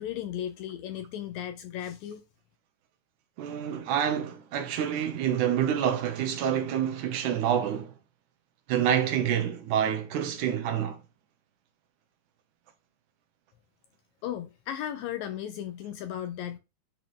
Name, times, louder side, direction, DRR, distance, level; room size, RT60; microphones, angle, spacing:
voice 1, 0.0-2.2 14.2-16.6, left 10 dB, 85° left, 1.6 m, -35 dB
voice 2, 3.4-7.9 8.7-11.0, right 9 dB, 75° right, 2.4 m, -27 dB
11.5 x 4.2 x 3.2 m
omnidirectional pair, 3.8 m